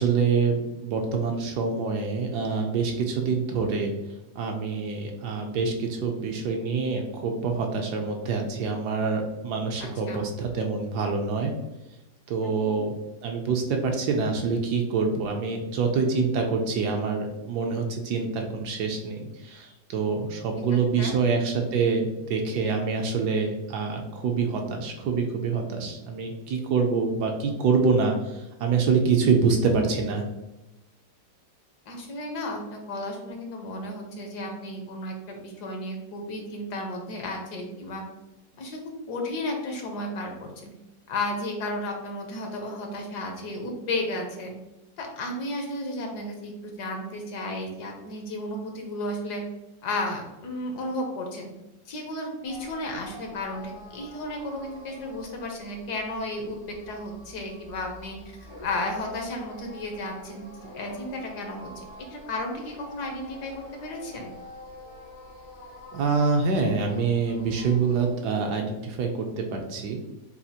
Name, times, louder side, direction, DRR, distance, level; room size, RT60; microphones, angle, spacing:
voice 1, 0.0-3.9 4.4-11.5 12.3-12.9 13.2-30.3 65.9-70.0, right 5 dB, 70° right, 3 dB, 1.1 m, -26 dB
voice 2, 9.8-10.2 12.5-12.8 21.0-21.2 31.9-38.0 38.6-38.8 39.1-40.7 41.1-44.5 45.0-49.4 49.8-51.5 51.9-56.6 56.9-58.2 58.6-60.5 60.7-61.8 62.1-64.3, left 1 dB, 70° left, 2 dB, 1.3 m, -33 dB
sound 1, 52.4-68.1, left 1 dB, 85° left, 2.0 m, -46 dB
6.9 x 2.4 x 2.8 m, 0.96 s
omnidirectional pair, 1.9 m